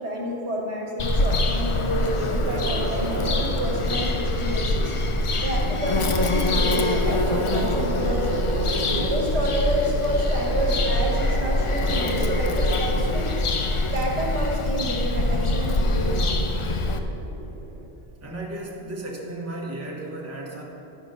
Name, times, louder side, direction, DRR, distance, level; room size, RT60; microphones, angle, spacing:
voice 1, 0.0-4.9 5.4-8.3 8.9-13.3 13.9-16.4, right 1 dB, 70° right, -2 dB, 1.7 m, -29 dB
Bird vocalization bird call bird song, 1.0-17.0, left 2 dB, 50° left, 0.4 m, -24 dB
sound 1, 1.5-17.9, right 2 dB, 50° right, 1.1 m, -34 dB
voice 2, 18.2-20.6, right 2 dB, 15° right, -3 dB, 1.1 m, -34 dB
10.0 x 6.1 x 5.3 m, 2.9 s
omnidirectional pair, 1.2 m